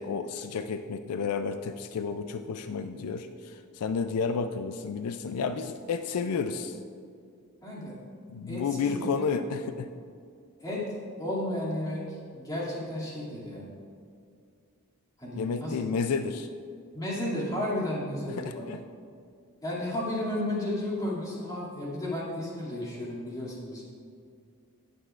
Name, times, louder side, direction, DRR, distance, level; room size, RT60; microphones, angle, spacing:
voice 1, 0.0-6.8 8.3-9.9 15.3-16.5 18.4-18.8, left 5 dB, 80° left, 9 dB, 0.4 m, -31 dB
voice 2, 7.6-7.9 8.5-9.2 10.6-10.9 11.2-13.7 15.2-15.8 16.9-18.6 19.6-23.9, left 1 dB, 15° left, -7 dB, 2.4 m, -33 dB
18.5 x 6.7 x 2.4 m, 2.3 s
head